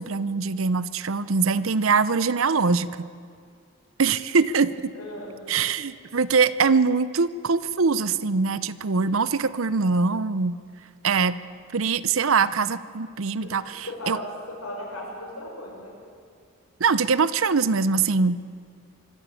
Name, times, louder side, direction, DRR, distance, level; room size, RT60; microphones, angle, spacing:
voice 1, 0.0-3.1 4.0-4.9 5.5-10.6 11.0-11.4 11.7-14.2 16.8-18.4, right 4 dB, 65° right, 15 dB, 0.7 m, -23 dB
voice 2, 4.9-5.4 12.4-12.5 13.4-13.6 13.8-15.9, left 1 dB, 85° left, -1 dB, 6.7 m, -36 dB
25.0 x 14.0 x 8.4 m, 2.2 s
head